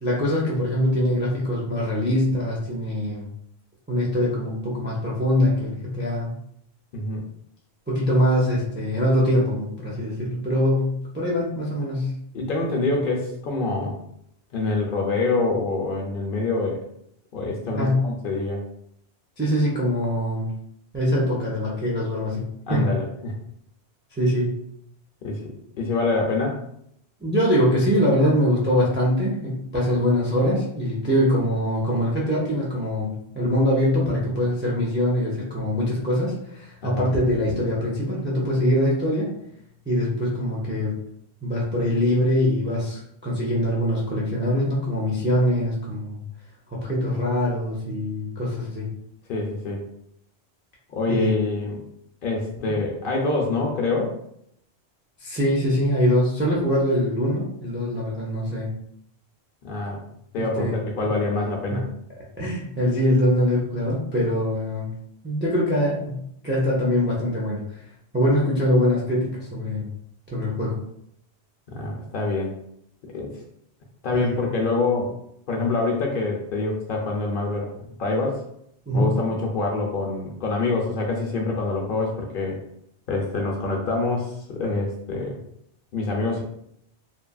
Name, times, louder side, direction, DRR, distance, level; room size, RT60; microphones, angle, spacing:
voice 1, 0.0-3.3 3.9-6.3 7.9-12.1 17.8-18.1 19.4-20.5 20.9-22.4 22.7-23.0 24.1-24.5 27.2-39.3 39.9-41.0 41.4-46.2 46.7-48.9 51.1-51.3 52.6-52.7 55.2-58.7 60.4-61.1 61.7-61.8 62.4-64.9 65.2-66.2 66.4-67.8 68.1-69.9 70.3-70.8 74.1-74.4 78.9-79.1, equal, 20° right, -5 dB, 0.3 m, -23 dB
voice 2, 12.3-14.0 14.5-16.8 17.3-18.6 22.7-23.3 25.2-26.6 36.8-37.0 49.3-49.8 50.9-51.8 52.2-54.1 59.6-60.0 60.3-61.9 71.7-72.5 73.1-73.3 74.0-75.1 75.5-77.7 78.0-78.4 78.9-82.6 83.1-85.4 85.9-86.4, left 3 dB, 60° left, 0 dB, 0.6 m, -25 dB
3.0 x 2.4 x 2.3 m, 0.73 s
omnidirectional pair, 1.1 m